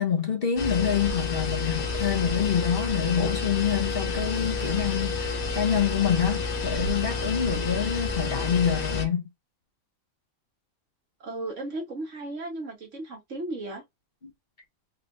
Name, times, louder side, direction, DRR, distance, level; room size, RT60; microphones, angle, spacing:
voice 1, 0.0-9.2, left 8 dB, 45° left, 1.2 m, -26 dB
sound 1, 0.6-9.0, left 4 dB, 90° left, 1.6 m, -30 dB
voice 2, 11.2-13.8, right 2 dB, 60° right, 1.8 m, -35 dB
4.2 x 3.3 x 2.6 m
omnidirectional pair, 1.5 m